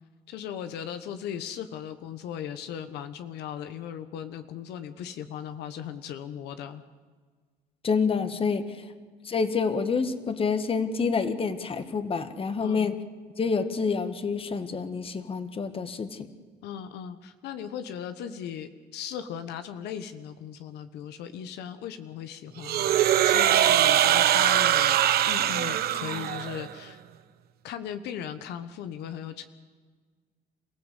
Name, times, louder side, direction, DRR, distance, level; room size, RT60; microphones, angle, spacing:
voice 1, 0.3-6.8 12.6-13.0 16.6-25.0 25.3-27.0 27.6-29.5, left 9 dB, 80° left, 10 dB, 1.3 m, -37 dB
voice 2, 7.8-8.6 9.2-13.0 13.4-16.3, left 5 dB, 35° left, 10 dB, 1.8 m, -27 dB
sound 1, 22.6-26.7, right 11 dB, 65° right, 1.1 m, -22 dB
28.5 x 15.5 x 8.3 m, 1.5 s
cardioid pair, 110°, 17 cm